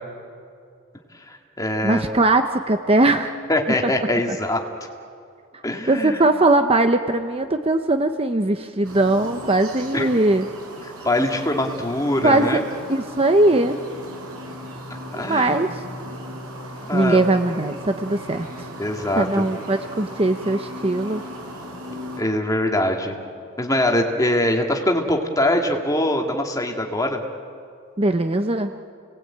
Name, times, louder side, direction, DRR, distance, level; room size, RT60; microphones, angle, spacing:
voice 1, 1.3-2.1 3.5-4.6 5.6-6.2 9.9-10.1 11.0-12.6 15.1-15.6 16.8-17.4 18.8-19.4 22.2-23.1 23.6-27.2, left 1 dB, 15° left, 2 dB, 2.3 m, -23 dB
voice 2, 1.8-3.4 4.3-4.4 5.9-10.5 12.2-12.6 12.9-13.8 15.2-15.8 16.9-18.7 19.2-21.2 28.0-28.7, right 2 dB, 25° right, 7 dB, 0.8 m, -20 dB
sound 1, 8.8-22.2, equal, 85° right, 5.5 m, -37 dB
29.5 x 19.5 x 8.8 m, 2.4 s
head